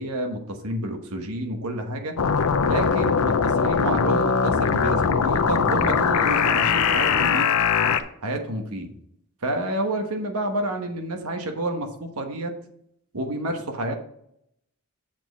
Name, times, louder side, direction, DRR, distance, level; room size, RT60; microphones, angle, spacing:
voice 1, 0.0-2.1 2.6-7.5 8.2-8.9 9.4-12.5 13.1-13.9, right 1 dB, 90° right, 4 dB, 1.2 m, -29 dB
sound 1, 2.2-8.0, left 6 dB, 85° left, 0.6 m, -21 dB
7.5 x 4.4 x 6.1 m, 0.72 s
head